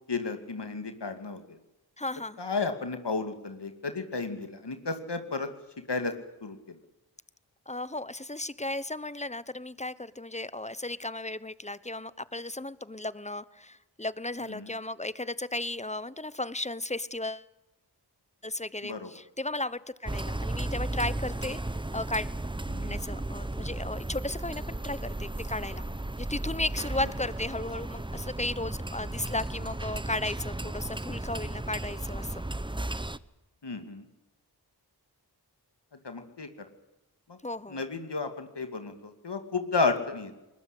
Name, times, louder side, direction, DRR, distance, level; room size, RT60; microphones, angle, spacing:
voice 1, 0.1-1.6 2.4-5.5 5.9-6.1 6.4-6.8 14.4-14.7 18.8-19.1 22.7-23.0 33.6-34.1 36.0-36.7 37.3-37.4 37.7-40.3, left 4 dB, 75° left, 7 dB, 2.5 m, -33 dB
voice 2, 2.0-2.4 7.7-17.5 18.4-21.6 21.9-22.3 22.8-25.8 26.2-32.4 37.4-37.8, left 2 dB, 15° left, 17 dB, 1.0 m, -35 dB
sound 1, 20.0-33.2, right 1 dB, 10° right, 0.9 m, -35 dB
21.0 x 21.0 x 8.4 m, 0.97 s
wide cardioid pair, 55°, 41 cm